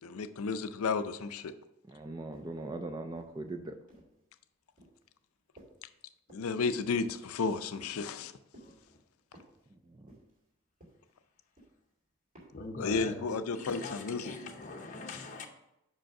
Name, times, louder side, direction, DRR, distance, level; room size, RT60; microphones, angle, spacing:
voice 1, 0.0-1.5 6.3-8.3 12.8-14.3, left 4 dB, 80° left, 0.5 m, -32 dB
voice 2, 1.8-3.8 9.7-10.2, right 2 dB, 20° right, 0.4 m, -41 dB
sound 1, 2.3-2.7 3.1-4.2 4.8-5.1 5.6-5.9 6.3-6.6 7.0-7.4 7.8-8.3 8.5-8.9 9.3-9.7 10.1-10.5 10.8-11.2 11.6-11.9 12.3-12.7 13.1-13.4, right 1 dB, 35° right, 2.4 m, -57 dB
voice 3, 12.5-13.2 13.5-15.5, left 3 dB, 35° left, 0.7 m, -42 dB
5.5 x 5.1 x 5.9 m
head